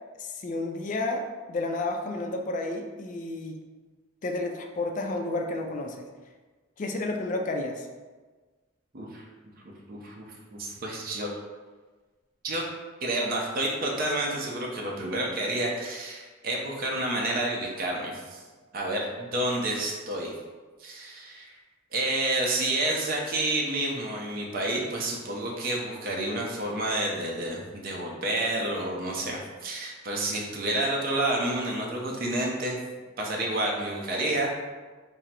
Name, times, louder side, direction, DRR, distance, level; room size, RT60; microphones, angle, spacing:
voice 1, 0.2-3.6 4.2-6.1 6.8-7.9, left 2 dB, 40° left, 3 dB, 0.4 m, -31 dB
voice 2, 8.9-9.3 9.9-11.3 12.4-12.6 13.0-18.4 18.7-20.3 20.8-21.6 21.9-32.8 33.2-34.5, right 1 dB, 45° right, -2 dB, 0.6 m, -29 dB
3.7 x 2.0 x 4.3 m, 1.4 s
head